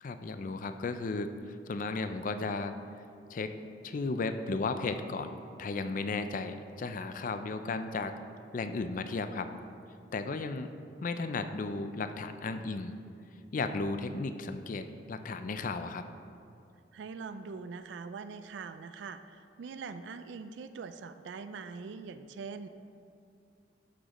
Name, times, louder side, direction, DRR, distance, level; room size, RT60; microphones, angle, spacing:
voice 1, 0.0-2.8 3.3-3.5 3.8-8.2 8.5-9.5 10.1-10.7 11.0-12.9 13.5-16.1, left 3 dB, 45° left, 9 dB, 0.4 m, -35 dB
voice 2, 16.9-22.7, right 5 dB, 75° right, 10 dB, 0.4 m, -43 dB
11.5 x 6.2 x 3.0 m, 2.5 s
head